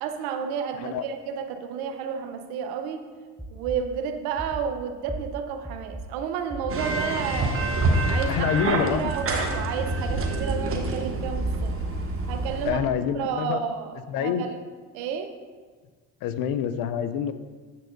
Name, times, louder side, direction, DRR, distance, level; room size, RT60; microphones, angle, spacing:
voice 1, 0.0-3.0 3.5-7.8 8.0-8.4 9.0-11.7 12.3-12.8 13.1-14.6 14.9-15.3, right 7 dB, 70° right, 7 dB, 0.8 m, -31 dB
sound 1, 3.4-3.8 4.4-4.6 5.1-5.2 5.6-6.0 6.5-6.9 7.3-7.4 7.9-8.3 8.9-9.4 9.9-10.6 11.2-12.3, right 1 dB, ahead, 0.6 m, -35 dB
sound 2, 6.7-12.7, right 2 dB, 35° right, 1.1 m, -27 dB
voice 2, 8.3-9.1 12.6-13.6 14.1-14.5 16.2-17.3, left 8 dB, 65° left, 11 dB, 0.6 m, -26 dB
7.6 x 6.6 x 2.5 m, 1.5 s
hypercardioid pair, 70°, 38 cm